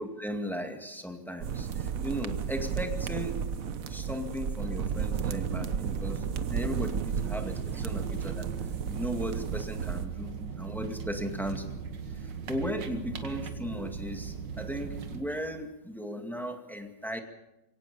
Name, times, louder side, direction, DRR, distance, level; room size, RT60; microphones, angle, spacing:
voice 1, 0.0-3.4 3.9-8.5 8.9-11.6 12.2-17.2, equal, ahead, 4 dB, 2.0 m, -36 dB
sound 1, 1.4-10.1, right 7 dB, 55° right, 1.2 m, -33 dB
sound 2, 7.2-15.2, right 6 dB, 85° right, 2.1 m, -38 dB
23.0 x 17.5 x 6.9 m, 0.91 s
omnidirectional pair, 1.9 m